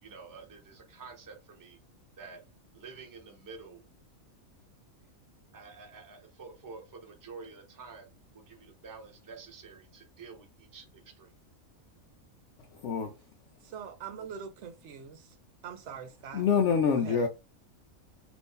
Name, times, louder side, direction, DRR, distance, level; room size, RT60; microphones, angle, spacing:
voice 1, 0.0-1.8 2.2-2.4 2.7-3.8 5.5-8.1 8.3-11.3, right 4 dB, 25° right, 0.5 m, -49 dB
voice 2, 12.7-13.1 16.3-17.3, left 6 dB, 65° left, 0.8 m, -26 dB
voice 3, 13.7-15.2 15.6-16.4 17.0-17.3, right 7 dB, 65° right, 0.8 m, -43 dB
2.6 x 2.6 x 3.5 m
omnidirectional pair, 1.5 m